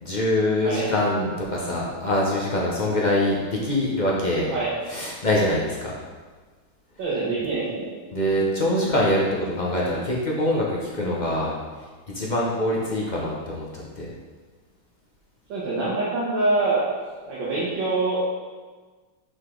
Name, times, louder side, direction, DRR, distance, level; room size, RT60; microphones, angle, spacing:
voice 1, 0.0-4.5 4.9-6.0 8.1-11.5 12.1-14.1, left 1 dB, 55° left, -4 dB, 0.5 m, -24 dB
voice 2, 7.0-7.9 15.5-16.8 17.3-18.2, right 3 dB, 70° right, -8 dB, 1.9 m, -25 dB
6.6 x 4.9 x 3.8 m, 1.4 s
omnidirectional pair, 2.2 m